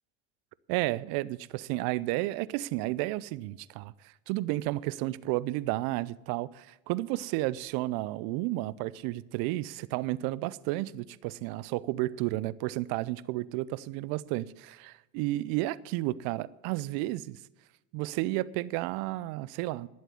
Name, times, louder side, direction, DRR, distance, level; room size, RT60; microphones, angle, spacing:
voice 1, 0.7-17.4 17.9-19.9, right 17 dB, 60° right, 0.6 m, -32 dB
11.0 x 7.6 x 9.7 m
hypercardioid pair, 85°, 41 cm